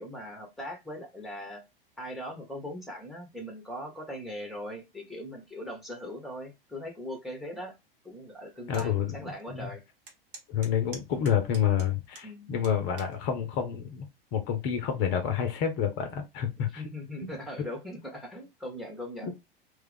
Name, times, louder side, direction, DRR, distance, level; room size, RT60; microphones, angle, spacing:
voice 1, 0.0-1.6 2.0-7.7 8.0-9.8 12.2-12.5 16.8-19.4, equal, ahead, 0.8 m, -40 dB
voice 2, 8.7-9.7 10.5-14.0 14.3-16.8 17.2-17.3 19.2-19.3, left 8 dB, 40° left, 0.6 m, -29 dB
sound 1, 8.7-8.9 9.4-9.5 10.1-12.3 12.6-13.2 13.9-14.2, right 3 dB, 65° right, 1.2 m, -47 dB
3.1 x 2.3 x 3.3 m
figure-of-eight pair, 85°, 29 cm